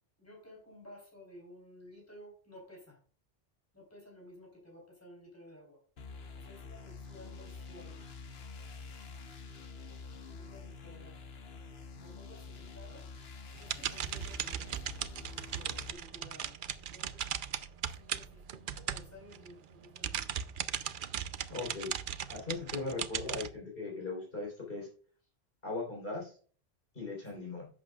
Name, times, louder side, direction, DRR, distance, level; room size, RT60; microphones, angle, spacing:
voice 1, 0.2-3.0 3.7-5.8 6.4-8.0 10.3-11.2 12.0-14.8 15.5-17.2 17.9-20.3 27.3-27.5, left 1 dB, 15° left, -1 dB, 3.6 m, -54 dB
sound 1, 6.0-15.9, left 4 dB, 75° left, 1.2 m, -47 dB
sound 2, 13.6-19.5 19.8-23.5, right 9 dB, 60° right, 0.7 m, -38 dB
voice 2, 21.5-21.9 22.3-24.9 25.6-26.3 26.9-27.7, left 3 dB, 60° left, -2 dB, 3.9 m, -38 dB
11.5 x 7.8 x 2.3 m, 0.43 s
omnidirectional pair, 1.0 m